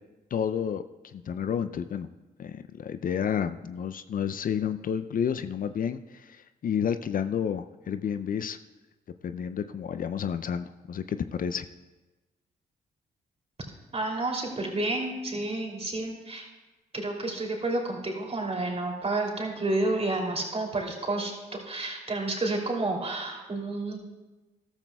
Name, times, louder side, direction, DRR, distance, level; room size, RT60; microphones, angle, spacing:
voice 1, 0.3-2.1 2.4-8.6 9.2-11.7, left 8 dB, 50° left, 11 dB, 0.5 m, -30 dB
voice 2, 13.9-16.5 16.9-24.0, right 2 dB, 35° right, 0 dB, 2.9 m, -30 dB
14.0 x 12.5 x 2.3 m, 1.1 s
supercardioid pair, 50°, 18 cm